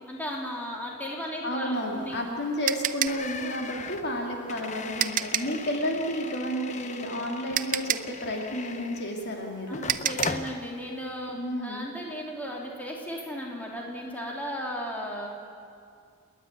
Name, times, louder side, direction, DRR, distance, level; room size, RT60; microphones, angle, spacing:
voice 1, 0.1-2.2 3.4-3.6 9.6-15.3, equal, 5° left, -2 dB, 2.8 m, -36 dB
voice 2, 1.4-9.8 11.3-11.9, equal, 50° left, 1 dB, 2.4 m, -31 dB
sound 1, 1.8-5.6 7.0-7.1 7.5-10.5, right 11 dB, 35° right, 0.5 m, -30 dB
sound 2, 3.1-9.3 9.7-10.6, left 4 dB, 30° left, 0.7 m, -39 dB
29.0 x 10.0 x 9.3 m, 2.3 s
head